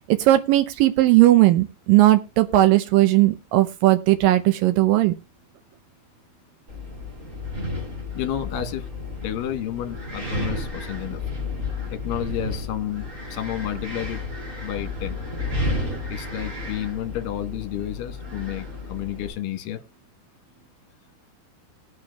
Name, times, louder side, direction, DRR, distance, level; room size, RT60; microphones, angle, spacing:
voice 1, 0.1-5.1, right 16 dB, 90° right, 9 dB, 1.9 m, -17 dB
Wind, 6.7-19.3, left 2 dB, 25° right, 2.2 m, -32 dB
voice 2, 8.1-8.9 9.2-11.2 11.9-14.2 14.6-15.2 16.1-19.8, left 11 dB, 65° left, 8 dB, 2.7 m, -31 dB
20.0 x 6.7 x 2.2 m, 0.26 s
omnidirectional pair, 4.7 m